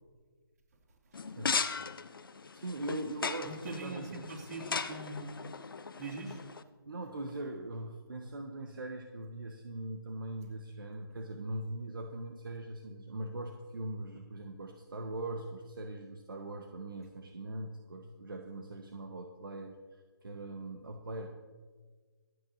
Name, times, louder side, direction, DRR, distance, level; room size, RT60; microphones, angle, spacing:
sound 1, 1.1-6.6, left 5 dB, 70° left, 0.8 m, -38 dB
voice 1, 2.5-4.3 6.9-21.3, right 2 dB, 65° right, 3 dB, 1.3 m, -41 dB
voice 2, 3.4-5.5 6.0-6.4, right 2 dB, 45° right, 1 dB, 2.8 m, -42 dB
26.0 x 9.6 x 2.8 m, 1.5 s
figure-of-eight pair, 155°, 12 cm